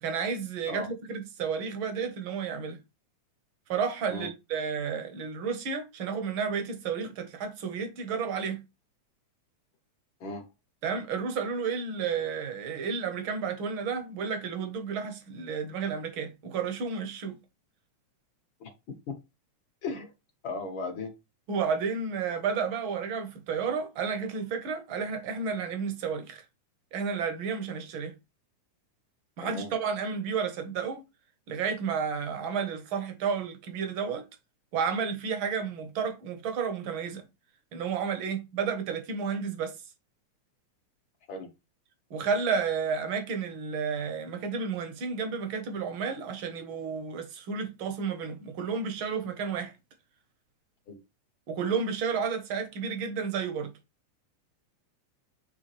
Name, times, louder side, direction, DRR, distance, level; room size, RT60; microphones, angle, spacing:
voice 1, 0.0-2.8 3.7-8.6 10.8-17.4 21.5-26.4 26.9-28.2 29.4-31.0 31.5-34.2 34.7-37.2 37.7-39.7 42.1-49.7 51.5-53.7, right 6 dB, 55° right, 1.6 m, -31 dB
voice 2, 19.8-20.1 20.4-21.1 29.4-29.7 41.3-41.5 50.9-51.0, left 3 dB, 55° left, 1.7 m, -36 dB
8.3 x 3.5 x 3.3 m
omnidirectional pair, 3.4 m